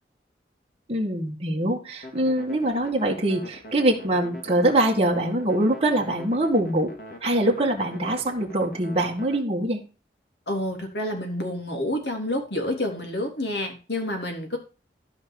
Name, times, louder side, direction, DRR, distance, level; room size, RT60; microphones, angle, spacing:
voice 1, 0.9-6.9 7.2-9.8, right 1 dB, 35° right, -1 dB, 1.9 m, -23 dB
sound 1, 2.0-9.4, left 1 dB, 50° left, 3.1 m, -43 dB
voice 2, 10.5-14.6, left 1 dB, 75° left, 4 dB, 3.4 m, -29 dB
13.5 x 5.2 x 4.7 m, 0.34 s
head